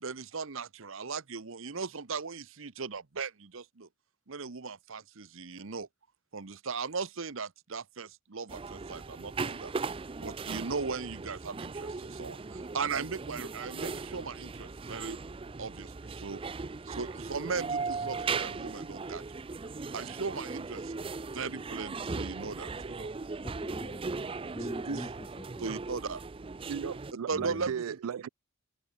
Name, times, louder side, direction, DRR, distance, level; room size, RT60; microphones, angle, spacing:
voice 1, 0.0-3.9 4.3-5.9 6.3-9.7 10.2-15.2 15.6-16.4 16.9-19.2 19.9-23.1 24.6-25.1 25.6-26.2 27.3-27.8, right 4 dB, 65° right, 1.0 m, -38 dB
sound 1, 8.5-27.1, right 4 dB, 25° right, 0.4 m, -38 dB
voice 2, 23.4-25.7 27.3-27.7, left 1 dB, 15° left, 1.0 m, -45 dB
voice 3, 26.7-28.3, right 7 dB, 85° right, 0.4 m, -36 dB
head